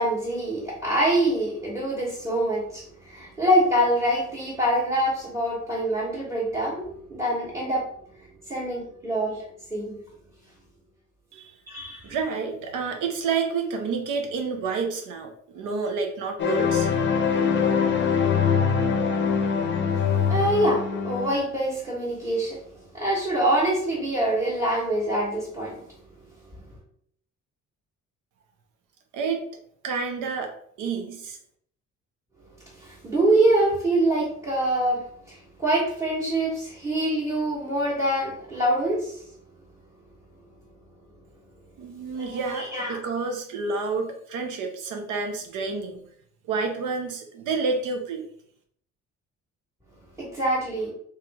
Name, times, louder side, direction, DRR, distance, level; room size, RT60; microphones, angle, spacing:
voice 1, 0.0-7.9 8.2-9.4 9.7-10.0 11.7-12.0 20.2-22.6 22.9-25.8 32.7-39.2 42.2-43.0 50.2-50.9, right 1 dB, 10° right, -8 dB, 1.4 m, -25 dB
voice 2, 12.0-16.9 29.1-29.4 29.8-30.5 30.8-31.4 41.8-46.0 46.5-48.2, right 4 dB, 90° right, 4 dB, 0.8 m, -29 dB
sound 1, 16.4-21.4, left 6 dB, 40° left, 0.6 m, -23 dB
3.2 x 2.9 x 3.5 m, 0.64 s
cardioid pair, 90°, 30 cm